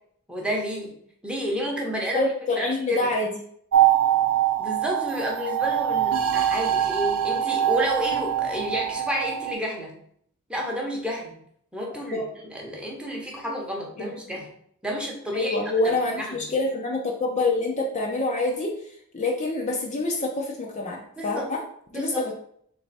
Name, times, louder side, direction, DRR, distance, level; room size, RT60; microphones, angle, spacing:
voice 1, 0.3-1.0 1.2-2.3 2.6-3.1 4.6-10.0 10.5-11.4 11.7-14.5 14.8-16.4 21.2-21.5 21.9-22.3, equal, 5° right, -2 dB, 0.8 m, -31 dB
voice 2, 2.1-3.3 12.1-12.3 14.0-14.4 15.3-18.7 19.1-21.6 21.9-22.3, left 2 dB, 30° left, 0 dB, 0.5 m, -26 dB
sound 1, 3.7-9.5, right 10 dB, 90° right, 0.5 m, -23 dB
3.4 x 3.2 x 4.0 m, 0.66 s
head